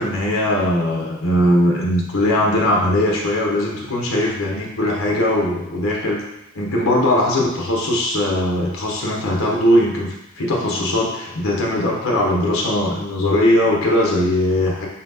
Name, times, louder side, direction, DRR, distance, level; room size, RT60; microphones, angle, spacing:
voice 1, 0.0-6.2 6.5-14.9, left 1 dB, 75° left, -2 dB, 0.9 m, -19 dB
4.2 x 3.6 x 2.7 m, 0.85 s
head